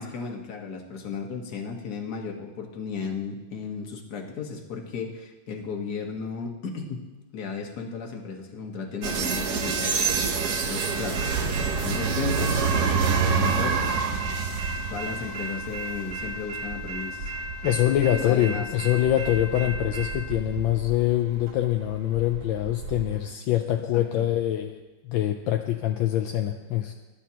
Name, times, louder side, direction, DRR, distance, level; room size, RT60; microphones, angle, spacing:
voice 1, 0.0-7.0 7.3-10.0 10.3-11.2 11.8-12.7 13.3-14.0 14.9-17.3 18.0-18.7 23.9-24.3, left 5 dB, 50° left, 2 dB, 1.8 m, -34 dB
sound 1, 9.0-23.1, right 5 dB, 55° right, 1.2 m, -28 dB
voice 2, 17.6-26.9, left 12 dB, 75° left, 4 dB, 1.4 m, -24 dB
21.5 x 11.5 x 2.9 m, 1.1 s
omnidirectional pair, 2.3 m